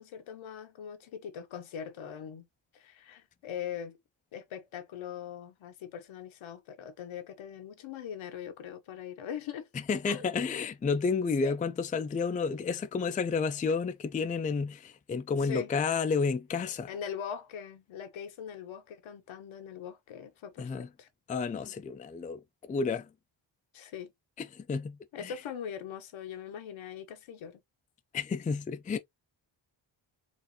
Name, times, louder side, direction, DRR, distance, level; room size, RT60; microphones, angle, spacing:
voice 1, 0.0-2.5 2.7-4.0 4.3-9.7 10.1-10.3 11.4-11.6 15.4-15.7 16.9-21.1 23.7-24.1 25.1-27.6, left 8 dB, 80° left, 1.0 m, -41 dB
voice 2, 9.7-16.9 20.6-20.9 21.3-22.4 22.7-23.1 24.4-25.3 28.1-29.0, left 5 dB, 20° left, 0.3 m, -31 dB
4.4 x 2.5 x 2.8 m
cardioid pair, 120°, 46 cm